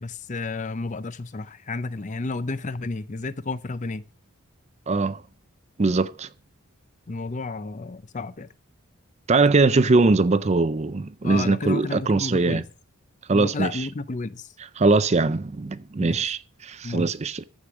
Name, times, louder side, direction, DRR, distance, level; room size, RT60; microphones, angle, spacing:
voice 1, 0.0-4.0 7.1-8.5 11.2-12.7 13.3-14.5 16.0-16.3 16.8-17.1, left 3 dB, 35° left, 0.6 m, -32 dB
voice 2, 4.9-5.2 5.8-6.3 9.3-12.6 13.3-13.9 14.8-17.4, right 3 dB, 30° right, 0.5 m, -21 dB
14.5 x 5.1 x 7.2 m
head